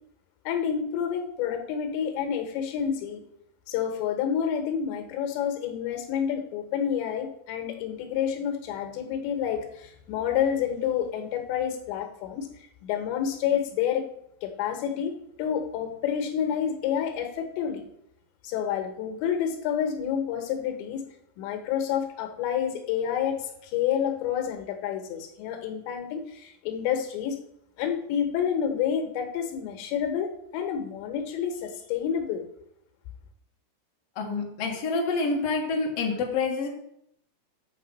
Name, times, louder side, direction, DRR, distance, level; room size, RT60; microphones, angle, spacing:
voice 1, 0.5-3.2 3.7-12.5 12.8-14.1 14.4-17.8 18.4-21.0 21.4-27.4 27.8-32.4, left 8 dB, 90° left, 4 dB, 3.4 m, -29 dB
voice 2, 34.2-36.7, left 4 dB, 55° left, -1 dB, 1.9 m, -27 dB
7.5 x 6.8 x 5.2 m, 0.73 s
omnidirectional pair, 5.0 m